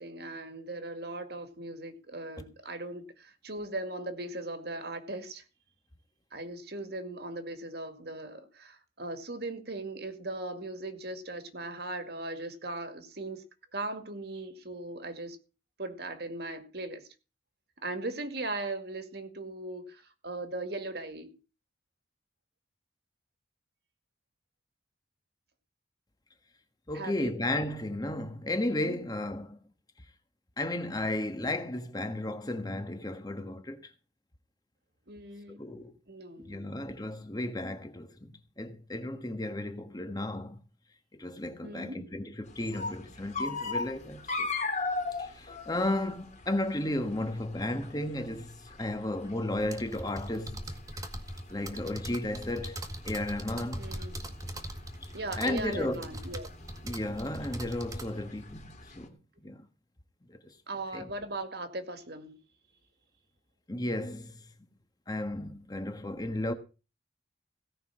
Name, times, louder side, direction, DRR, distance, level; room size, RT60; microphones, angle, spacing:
voice 1, 0.0-5.4 6.3-13.4 13.7-15.4 15.8-17.1 17.8-21.3 26.9-27.3 35.1-35.6 36.1-36.9 41.6-42.1 53.8-54.2 55.1-56.5 60.7-62.4, right 2 dB, 60° right, 2.1 m, -39 dB
voice 2, 26.9-29.6 30.6-33.9 35.6-35.9 36.4-40.6 41.1-44.5 45.2-50.7 51.5-53.9 55.0-55.1 55.4-56.1 56.8-59.2 59.4-59.6 60.3-60.5 60.9-61.0 63.7-64.4 65.1-66.5, left 1 dB, 20° left, 1.3 m, -34 dB
sound 1, 42.5-59.0, left 3 dB, 40° left, 2.7 m, -39 dB
sound 2, 49.6-58.1, right 1 dB, 20° right, 1.9 m, -41 dB
17.0 x 5.8 x 7.4 m
head